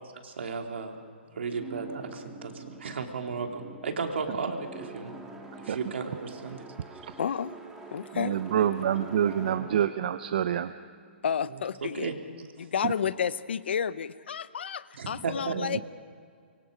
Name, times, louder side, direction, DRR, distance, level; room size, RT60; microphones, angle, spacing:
voice 1, 0.2-1.0 1.3-5.1 5.6-7.0 11.8-12.1 12.6-12.7 14.9-15.5, right 5 dB, 70° right, 3 dB, 2.9 m, -34 dB
sound 1, 1.6-11.5, right 4 dB, 5° right, 1.7 m, -46 dB
voice 2, 7.2-7.5 7.9-8.4 11.2-12.1 12.6-15.8, left 7 dB, 65° left, 16 dB, 0.8 m, -31 dB
voice 3, 8.1-10.7 15.5-15.8, right 9 dB, 50° right, 11 dB, 0.6 m, -27 dB
25.0 x 24.0 x 5.1 m, 2.2 s
hypercardioid pair, 165°, 6 cm